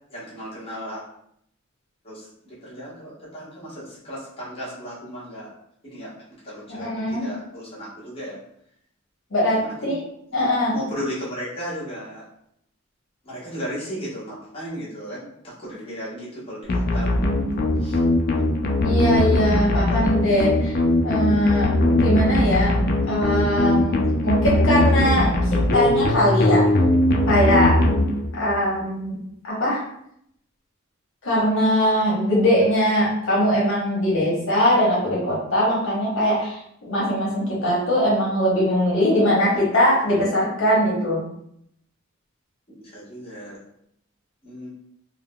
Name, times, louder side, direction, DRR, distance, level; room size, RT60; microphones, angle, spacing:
voice 1, 0.1-1.0 2.0-5.5 5.8-6.1 6.4-8.4 9.6-9.9 10.3-12.2 13.2-17.3 17.8-18.0 42.8-43.6 44.4-44.7, equal, 30° left, -9 dB, 1.1 m, -35 dB
voice 2, 6.7-7.2 9.3-10.0 10.3-10.7 18.8-20.8 21.0-22.7 23.1-26.6 27.3-27.7 28.3-29.2 29.4-29.8 31.2-41.2, equal, 65° left, -6 dB, 0.9 m, -21 dB
sound 1, 16.7-28.5, left 1 dB, 45° left, 0.4 m, -20 dB
3.5 x 2.0 x 2.2 m, 0.72 s
head